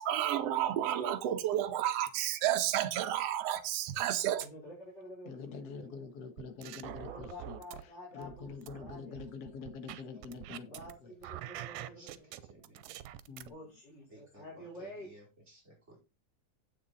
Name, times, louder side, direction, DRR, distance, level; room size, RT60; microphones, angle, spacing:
voice 1, 0.0-4.5, right 11 dB, 60° right, 1.9 m, -31 dB
voice 2, 4.4-5.9 7.0-8.5 8.8-9.2 10.7-12.5 13.5-15.1, left 1 dB, 30° left, 4.8 m, -49 dB
voice 3, 5.2-11.1 13.3-13.6, left 5 dB, 65° left, 0.9 m, -46 dB
sound 1, 6.4-7.8 8.2-10.9 11.2-13.5, right 13 dB, 85° right, 2.2 m, -45 dB
voice 4, 9.5-9.8 10.1-13.0 14.1-16.0, right 1 dB, 20° right, 4.4 m, -59 dB
8.6 x 8.1 x 4.0 m
omnidirectional pair, 3.6 m